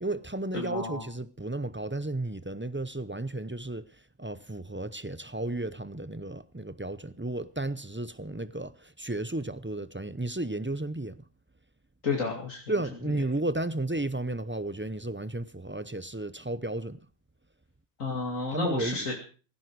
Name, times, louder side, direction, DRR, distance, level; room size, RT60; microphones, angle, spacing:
voice 1, 0.0-3.9 4.2-11.2 12.7-17.0 18.5-19.1, right 2 dB, 15° right, 0.4 m, -33 dB
voice 2, 0.5-1.0 12.0-12.6 18.0-19.1, left 4 dB, 75° left, 2.9 m, -31 dB
17.0 x 16.0 x 4.7 m
omnidirectional pair, 1.4 m